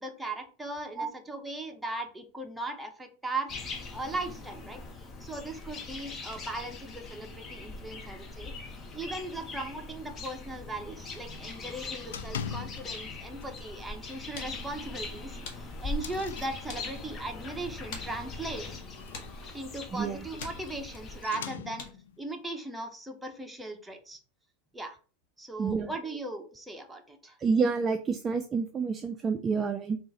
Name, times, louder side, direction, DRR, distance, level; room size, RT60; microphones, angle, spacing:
voice 1, 0.0-3.5 3.9-8.5 8.9-18.8 19.5-21.9 22.2-24.2 24.7-25.0 25.4-27.4, right 2 dB, 5° right, 3 dB, 0.8 m, -38 dB
sound 1, 3.5-21.3, left 3 dB, 30° left, 0.8 m, -41 dB
sound 2, 12.1-13.1 13.4-13.8 14.1-14.2 14.6-14.7 15.3-17.3 18.8-22.2, left 7 dB, 90° left, 0.4 m, -42 dB
sound 3, 14.9-22.2, left 4 dB, 60° left, 1.1 m, -49 dB
voice 2, 19.9-20.3 25.6-26.0 27.4-30.0, right 5 dB, 20° right, 6 dB, 0.3 m, -28 dB
3.7 x 2.4 x 4.0 m, 0.38 s
supercardioid pair, 120°, 0 cm